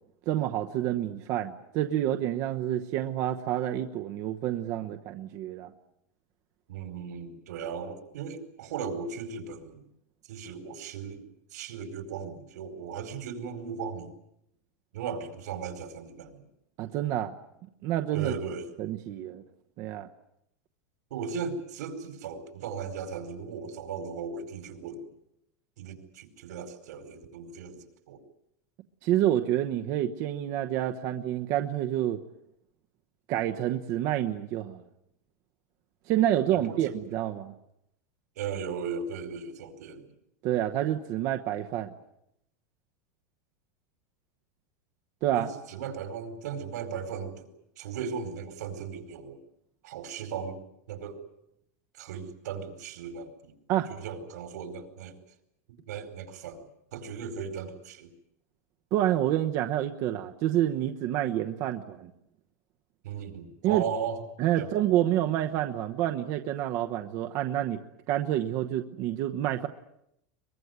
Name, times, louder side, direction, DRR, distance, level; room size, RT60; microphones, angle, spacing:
voice 1, 0.3-5.7 16.8-17.3 17.8-18.3 18.8-19.4 19.8-20.1 29.0-32.2 33.3-34.8 36.1-37.5 40.4-41.9 45.2-45.5 53.7-53.9 58.9-62.1 63.6-63.8 64.4-67.8 68.1-69.7, right 12 dB, 40° right, 5 dB, 1.0 m, -28 dB
voice 2, 6.7-9.8 10.3-14.1 14.9-16.4 18.1-18.7 21.1-25.0 25.8-28.2 36.5-37.0 38.3-40.0 45.3-47.5 47.8-49.4 49.8-50.6 50.9-51.2 51.9-53.5 53.9-55.2 55.9-56.6 56.9-58.1 63.0-64.2 64.5-64.7, right 6 dB, 85° right, 8 dB, 4.8 m, -37 dB
23.0 x 22.5 x 9.5 m, 0.79 s
supercardioid pair, 170°, 9 cm